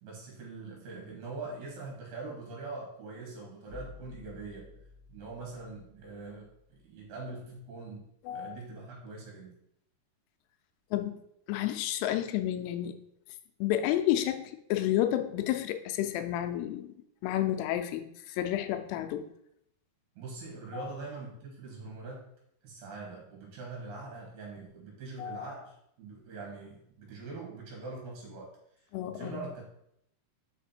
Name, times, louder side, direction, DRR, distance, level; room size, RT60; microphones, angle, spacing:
voice 1, 0.0-4.8 5.1-8.0 8.3-9.6 20.2-22.3 22.6-28.6 29.0-29.6, right 3 dB, 70° right, -2 dB, 3.6 m, -43 dB
sound 1, 3.7-7.5, left 2 dB, 50° right, 2.4 m, -52 dB
voice 2, 8.3-8.6 10.9-11.2 11.5-13.0 13.6-16.9 17.2-19.3 20.7-20.9 25.2-25.5 28.9-29.4, left 12 dB, 90° left, 8 dB, 2.8 m, -31 dB
6.4 x 5.0 x 4.3 m, 0.74 s
omnidirectional pair, 4.7 m